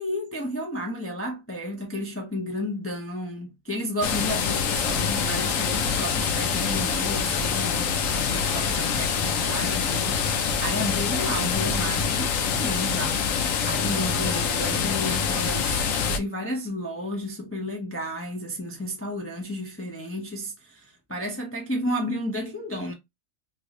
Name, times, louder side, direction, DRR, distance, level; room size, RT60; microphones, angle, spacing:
voice 1, 0.0-7.9 8.3-10.3 10.6-13.2 13.6-22.9, equal, 20° left, 0.4 m, -32 dB
sound 1, 4.0-16.2, left 6 dB, 75° left, 1.0 m, -25 dB
3.0 x 2.6 x 3.0 m
omnidirectional pair, 1.4 m